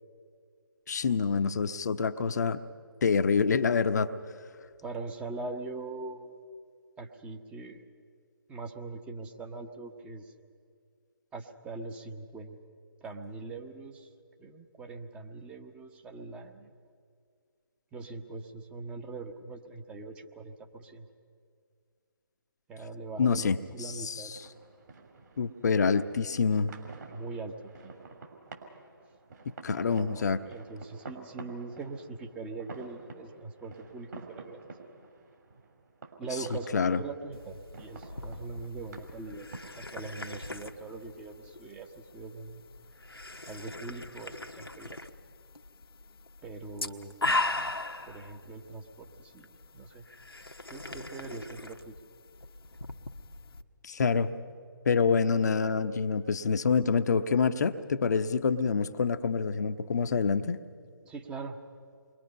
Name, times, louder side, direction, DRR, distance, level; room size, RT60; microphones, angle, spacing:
voice 1, 0.9-2.6 3.0-4.1 23.2-24.4 25.4-26.7 29.6-30.4 36.7-37.0 53.8-54.3 54.9-60.6, left 5 dB, 45° left, 10 dB, 0.9 m, -26 dB
voice 2, 4.8-6.3 7.0-7.8 8.5-10.3 11.3-12.6 13.0-14.1 14.4-16.7 17.9-21.1 22.7-24.3 27.1-27.9 29.9-34.6 36.2-39.5 39.8-42.6 43.5-45.0 46.4-47.1 48.0-49.5 49.7-50.0 50.7-52.0 61.0-61.6, right 3 dB, 10° right, 4 dB, 1.1 m, -42 dB
sound 1, 23.9-43.2, right 3 dB, 50° right, 3.4 m, -50 dB
sound 2, 37.3-53.6, left 2 dB, 85° left, 1.3 m, -39 dB
29.0 x 22.5 x 5.5 m, 2.1 s
figure-of-eight pair, 145°, 12 cm